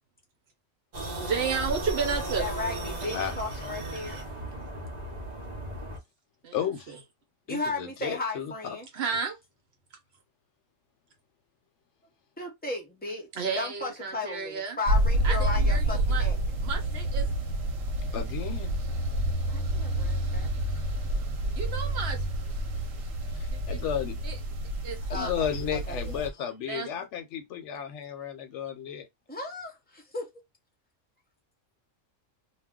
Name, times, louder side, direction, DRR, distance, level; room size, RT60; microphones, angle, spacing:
sound 1, 0.9-6.0, right 1 dB, 40° right, 0.8 m, -35 dB
voice 1, 1.2-2.5 6.4-6.6 8.9-9.4 13.4-14.8 15.2-15.8 16.1-16.3 16.6-17.3 21.5-22.2 24.2-24.4 24.8-25.3 26.6-26.9, right 6 dB, 60° right, 1.0 m, -32 dB
voice 2, 2.4-4.2 7.5-8.9 12.4-13.3 13.6-16.4 19.5-20.5 25.1-26.3 29.3-30.3, left 2 dB, 10° left, 0.6 m, -35 dB
voice 3, 6.5-6.9 7.5-8.5 18.1-18.7 23.4-24.1 25.1-29.0, left 9 dB, 70° left, 0.9 m, -33 dB
sound 2, 14.9-26.3, right 1 dB, 90° right, 1.1 m, -28 dB
2.4 x 2.2 x 3.5 m
omnidirectional pair, 1.3 m